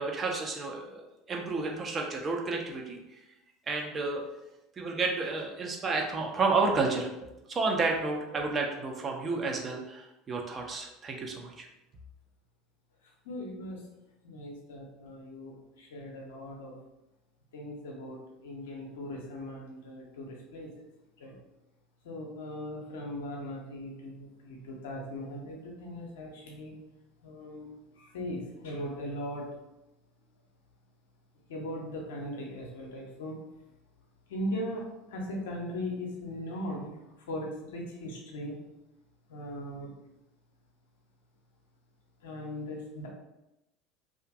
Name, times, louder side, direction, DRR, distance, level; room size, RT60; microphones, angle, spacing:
voice 1, 0.0-3.2 3.7-4.2 4.8-11.7, right 3 dB, 30° right, 1 dB, 0.4 m, -31 dB
voice 2, 13.2-13.9 14.2-16.7 17.5-20.7 21.2-21.4 22.0-26.7 27.2-27.7 28.0-29.5 31.5-33.4 34.3-36.9 37.3-38.5 39.3-39.9 42.2-43.1, left 1 dB, 70° left, -1 dB, 0.6 m, -39 dB
2.5 x 2.4 x 2.4 m, 0.92 s
figure-of-eight pair, 70°, 0 cm